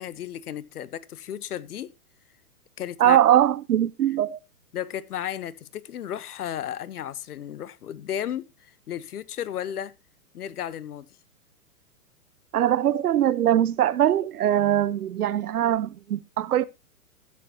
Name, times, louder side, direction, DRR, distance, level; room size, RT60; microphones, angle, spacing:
voice 1, 0.0-1.9 2.8-3.2 4.7-9.9 10.3-11.1, left 10 dB, 75° left, 1.1 m, -34 dB
voice 2, 3.0-4.4 12.5-16.6, right 11 dB, 75° right, 1.0 m, -21 dB
13.5 x 9.4 x 2.8 m
hypercardioid pair, 130°, 45 cm